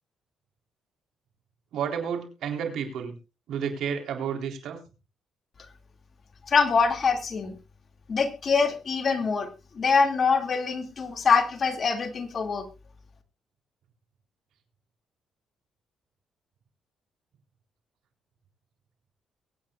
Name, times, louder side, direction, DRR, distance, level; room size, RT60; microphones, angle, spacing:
voice 1, 1.7-3.1 3.5-4.8, right 7 dB, 80° right, 3 dB, 3.9 m, -31 dB
voice 2, 6.4-7.5 8.1-9.5 9.7-12.7, left 5 dB, 45° left, 5 dB, 2.6 m, -24 dB
23.0 x 9.3 x 2.5 m, 0.30 s
cardioid pair, 90°, 0 cm